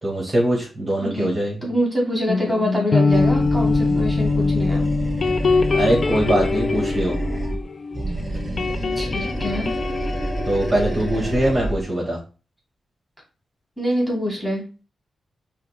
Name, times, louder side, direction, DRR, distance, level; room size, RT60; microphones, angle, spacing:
voice 1, 0.0-1.6 5.7-7.2 10.5-12.2, right 1 dB, 35° right, -3 dB, 1.7 m, -22 dB
voice 2, 1.0-4.9 9.0-9.7 13.8-14.6, equal, ahead, -2 dB, 2.2 m, -25 dB
sound 1, 2.3-8.1 8.3-11.8, left 4 dB, 50° left, 0.5 m, -23 dB
Animal, 3.1-7.6 7.9-11.8, right 1 dB, 15° right, 2.4 m, -28 dB
5.6 x 2.2 x 3.4 m, 0.32 s
cardioid pair, 70°, 0 cm